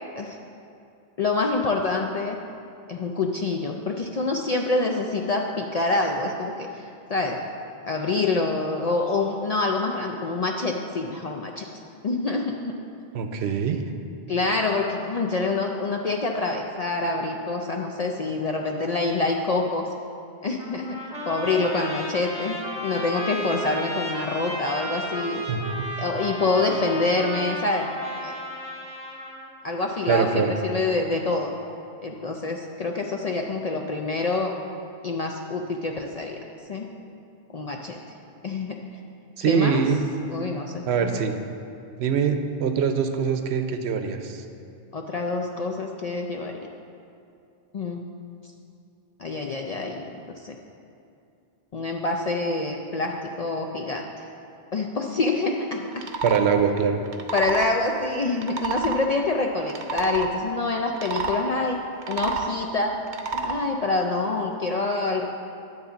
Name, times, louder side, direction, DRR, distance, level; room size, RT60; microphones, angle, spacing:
voice 1, 1.2-2.4 2.9-7.4 7.9-11.7 12.0-12.7 14.3-19.9 20.4-21.0 21.3-25.4 26.0-27.9 28.2-28.3 29.6-31.5 32.0-34.5 35.0-36.4 36.7-36.9 37.5-38.0 38.4-38.8 39.4-39.8 40.3-41.2 44.9-46.7 47.7-48.0 49.2-50.6 51.7-54.3 54.7-56.0 57.3-61.8 62.1-63.0 63.3-65.3, left 3 dB, 55° left, 1 dB, 0.4 m, -26 dB
voice 2, 13.1-13.8 25.5-25.9 30.1-30.5 39.4-40.0 40.9-41.4 42.0-44.4 56.2-57.0, right 6 dB, 80° right, 7 dB, 0.9 m, -23 dB
Trumpet, 20.6-29.5, equal, 5° right, 1.2 m, -34 dB
sound 1, 55.9-56.4 57.1-57.7 58.4-59.0 59.6-60.3 60.9-61.4 61.9-62.5 63.1-63.6, right 4 dB, 55° right, 0.7 m, -29 dB
9.6 x 4.1 x 6.9 m, 2.6 s
omnidirectional pair, 1.1 m